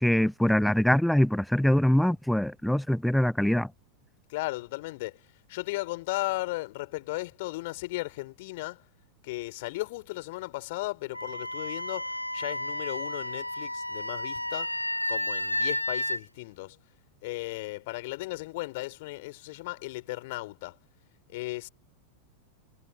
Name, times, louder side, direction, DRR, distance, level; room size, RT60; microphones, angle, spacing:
voice 1, 0.0-3.7, left 1 dB, ahead, 0.7 m, -23 dB
voice 2, 4.3-5.2 5.5-8.8 9.2-14.7 15.1-16.8 17.2-20.8 21.3-21.7, left 21 dB, 50° left, 3.3 m, -35 dB
Wind instrument woodwind instrument, 11.1-16.2, left 1 dB, 85° left, 5.8 m, -32 dB
figure-of-eight pair, 90°, 0 cm